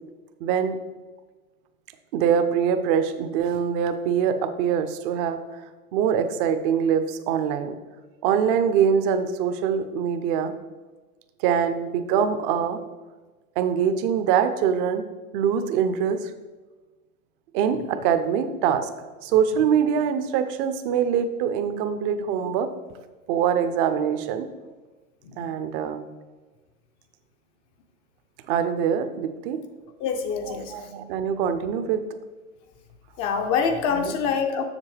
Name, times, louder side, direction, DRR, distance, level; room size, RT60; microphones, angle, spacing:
voice 1, 0.4-0.8 2.1-5.4 5.9-7.8 8.2-10.5 11.4-12.8 13.6-15.0 15.3-16.3 17.5-22.7 23.3-24.5 25.4-26.0 28.5-29.6 30.4-32.0 33.9-34.1, right 8 dB, 35° right, 9 dB, 0.6 m, -24 dB
voice 2, 30.0-30.7 33.2-34.6, left 6 dB, 30° left, 5 dB, 0.6 m, -25 dB
7.3 x 6.8 x 3.3 m, 1.3 s
hypercardioid pair, 110°, 44 cm